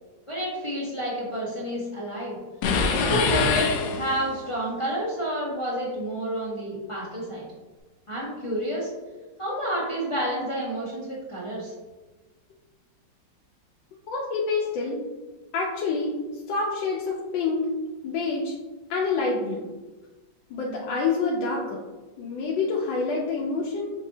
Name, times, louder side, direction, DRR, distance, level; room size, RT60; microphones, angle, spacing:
voice 1, 0.3-2.4 2.9-7.4 8.1-8.9 9.4-11.7, right 1 dB, 45° left, -6 dB, 0.4 m, -29 dB
sound 1, 2.6-4.4, left 5 dB, 70° left, 1.0 m, -24 dB
voice 2, 14.1-15.0 15.5-16.2 16.5-17.7 18.0-18.5 18.9-19.7 20.5-21.8 22.2-23.9, left 4 dB, 90° left, -3 dB, 1.3 m, -27 dB
6.0 x 2.6 x 2.7 m, 1.2 s
omnidirectional pair, 2.0 m